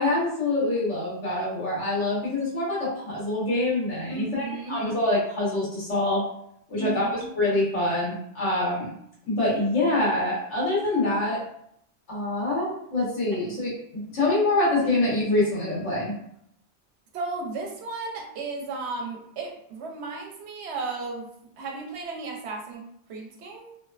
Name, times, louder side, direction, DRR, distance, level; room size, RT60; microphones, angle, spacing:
voice 1, 0.0-6.2 6.7-8.9 9.3-11.4 12.1-13.7 14.1-16.1, left 2 dB, 85° left, -7 dB, 1.3 m, -25 dB
voice 2, 4.1-4.8 6.8-7.3 17.1-21.3 21.6-23.7, right 3 dB, 75° right, 1 dB, 0.9 m, -34 dB
2.8 x 2.1 x 2.4 m, 0.72 s
omnidirectional pair, 1.2 m